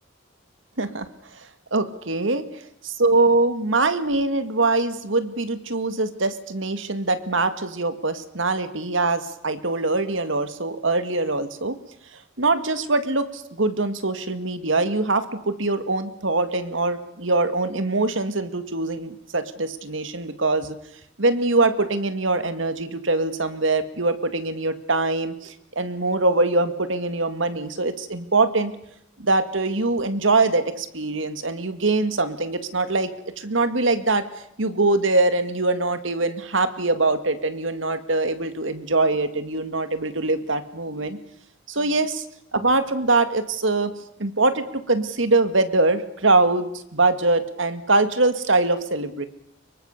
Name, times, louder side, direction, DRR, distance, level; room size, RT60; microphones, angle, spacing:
voice 1, 0.8-11.8 12.4-20.8 21.2-28.7 29.2-33.1 33.4-34.2 34.6-41.2 41.7-42.2 42.5-43.9 44.2-49.2, right 2 dB, 70° right, 10 dB, 2.3 m, -23 dB
25.5 x 23.5 x 6.8 m, 0.76 s
head